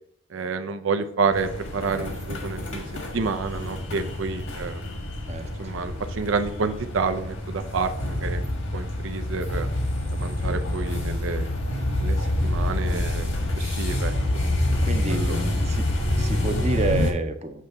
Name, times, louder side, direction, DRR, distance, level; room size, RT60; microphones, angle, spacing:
voice 1, 0.3-2.8 3.1-4.8 5.6-8.4 8.7-9.7 10.1-11.4 12.0-12.2 12.4-13.3 13.6-14.1 15.1-15.4, right 4 dB, 75° right, 8 dB, 0.5 m, -29 dB
sound 1, 1.3-17.1, left 1 dB, 80° left, 1.6 m, -27 dB
voice 2, 5.3-5.7 12.8-13.0 14.8-15.9 16.2-17.7, right 3 dB, 35° right, 7 dB, 0.6 m, -30 dB
7.4 x 3.3 x 5.4 m, 0.71 s
head